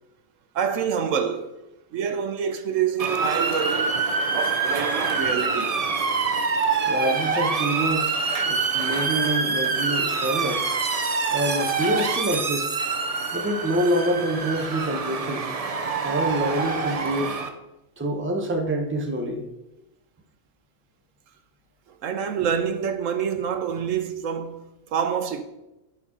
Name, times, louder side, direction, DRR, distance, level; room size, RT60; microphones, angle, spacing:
voice 1, 0.5-1.5 1.9-4.0 4.3-5.8 22.0-24.6 24.9-25.4, right 7 dB, 80° right, 1.1 m, -26 dB
Motor vehicle (road) / Siren, 3.0-17.5, right 4 dB, 40° right, 0.6 m, -25 dB
voice 2, 6.9-10.6 11.3-12.7 13.3-15.5 16.0-17.4 18.0-19.4, right 1 dB, 10° right, 0.8 m, -26 dB
11.0 x 4.1 x 5.3 m
omnidirectional pair, 1.4 m